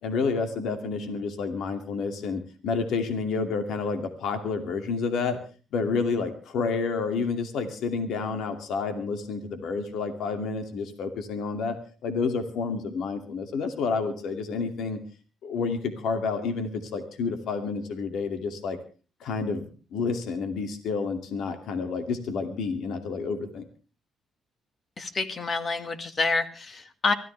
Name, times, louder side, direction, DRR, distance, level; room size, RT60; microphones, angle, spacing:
voice 1, 0.0-5.4 5.7-15.0 15.4-18.8 19.2-23.7, left 4 dB, 80° left, 6 dB, 2.5 m, -29 dB
voice 2, 25.0-27.1, left 3 dB, 40° left, 9 dB, 2.1 m, -28 dB
24.0 x 15.0 x 3.4 m, 0.35 s
cardioid pair, 90°, 0 cm